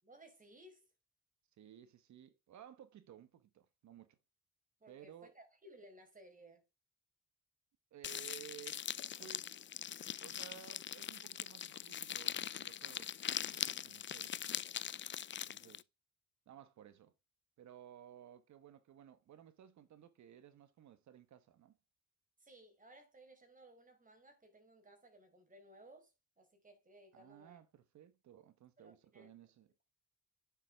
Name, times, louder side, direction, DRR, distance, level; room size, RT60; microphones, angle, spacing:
voice 1, 0.0-0.9 4.8-6.6 22.4-27.6 28.8-29.3, right 1 dB, 25° right, 5.0 m, -60 dB
voice 2, 1.6-4.2 4.9-5.3 7.9-8.8 9.2-9.6 10.0-13.1 13.4-14.4 15.4-15.9 16.5-17.1 17.6-21.8 27.1-29.7, right 10 dB, 65° right, 1.3 m, -57 dB
sound 1, 8.0-15.8, left 9 dB, 40° left, 0.5 m, -42 dB
9.8 x 7.5 x 3.6 m
cardioid pair, 90°, 30 cm